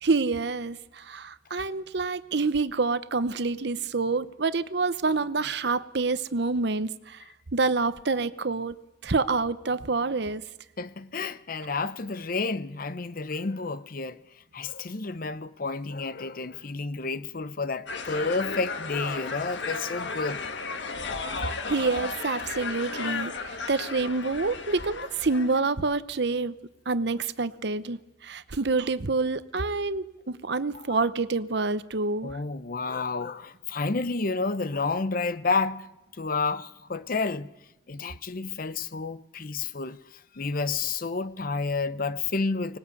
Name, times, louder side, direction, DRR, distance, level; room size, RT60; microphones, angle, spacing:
voice 1, 0.0-7.2 7.5-8.7 9.0-10.5 21.5-26.5 26.9-32.4, right 3 dB, 65° right, 0.9 m, -27 dB
voice 2, 10.8-14.2 14.5-20.4 30.7-31.0 32.2-35.9 36.2-37.5 37.9-40.0 40.3-42.8, left 4 dB, 50° left, 0.8 m, -30 dB
sound 1, 17.9-25.6, left 4 dB, 80° left, 1.7 m, -34 dB
24.5 x 20.0 x 8.4 m
head